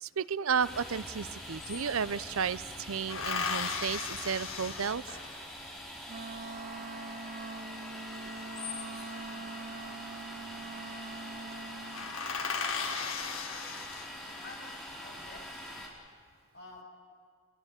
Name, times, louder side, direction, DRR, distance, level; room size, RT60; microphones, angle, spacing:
voice 1, 0.0-5.0, right 6 dB, 85° right, 18 dB, 0.7 m, -33 dB
Domestic sounds home sounds, 0.6-15.9, equal, ahead, 4.2 m, -44 dB
sound 1, 1.0-1.1 1.3-2.3 3.1-5.6 8.3-9.3 10.4-10.8 11.1-11.2 11.6-11.7 11.9-14.5 15.1-15.7, left 5 dB, 80° left, 2.2 m, -37 dB
Wind instrument woodwind instrument, 6.1-12.2, right 3 dB, 35° right, 0.6 m, -44 dB
voice 2, 12.5-14.0 14.4-15.7 16.5-16.8, left 3 dB, 50° left, 0 dB, 6.2 m, -52 dB
25.0 x 21.5 x 8.3 m, 2.1 s
head